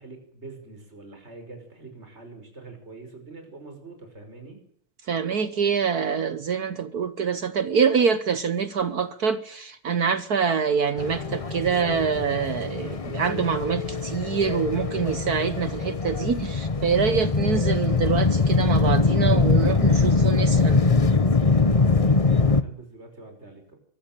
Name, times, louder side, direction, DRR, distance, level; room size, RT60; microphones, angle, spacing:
voice 1, 0.0-4.6 21.6-23.8, right 3 dB, 30° right, 5.9 m, -44 dB
voice 2, 5.1-20.8, right 6 dB, 55° right, 1.4 m, -25 dB
sound 1, 11.0-22.6, left 4 dB, 25° left, 0.7 m, -22 dB
23.5 x 15.0 x 9.0 m
omnidirectional pair, 2.2 m